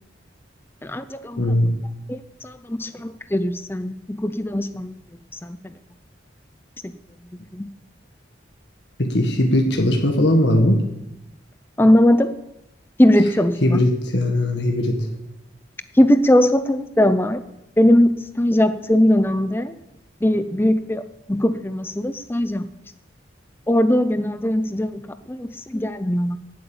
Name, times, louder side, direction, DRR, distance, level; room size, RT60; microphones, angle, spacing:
voice 1, 0.8-1.4 2.1-5.0 5.4-5.7 7.5-7.7 11.8-12.3 13.0-13.8 15.9-17.4 17.8-19.8 20.2-22.6 23.7-26.4, left 1 dB, 10° left, 11 dB, 0.5 m, -20 dB
voice 2, 1.4-1.8 9.0-10.8 13.6-15.1, left 1 dB, 70° left, 2 dB, 1.6 m, -19 dB
17.5 x 8.1 x 7.1 m, 0.91 s
head